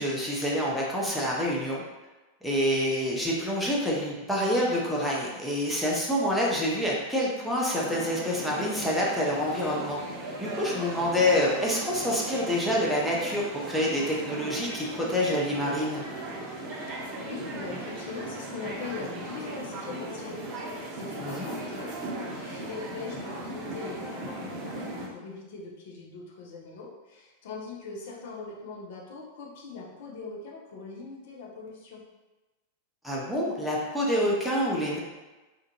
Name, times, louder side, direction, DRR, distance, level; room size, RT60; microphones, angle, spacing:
voice 1, 0.0-1.8 2.4-10.0 10.4-16.0 21.2-21.5 33.0-35.0, left 1 dB, ahead, -5 dB, 0.5 m, -27 dB
sound 1, 7.7-25.1, right 2 dB, 35° right, 0.7 m, -37 dB
voice 2, 16.9-32.0, left 4 dB, 55° left, -2 dB, 0.5 m, -41 dB
2.4 x 2.2 x 2.7 m, 1.2 s
figure-of-eight pair, 90°, 0 cm